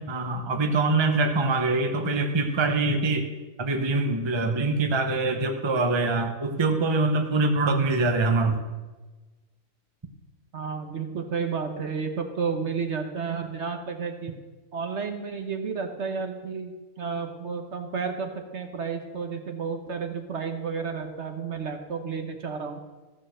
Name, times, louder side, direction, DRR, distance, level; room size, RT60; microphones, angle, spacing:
voice 1, 0.1-3.3 3.6-8.6, right 3 dB, 25° right, 5 dB, 0.8 m, -24 dB
voice 2, 10.5-14.3 14.7-22.8, right 5 dB, 55° right, 5 dB, 1.2 m, -31 dB
14.5 x 6.7 x 6.3 m, 1.2 s
omnidirectional pair, 1.5 m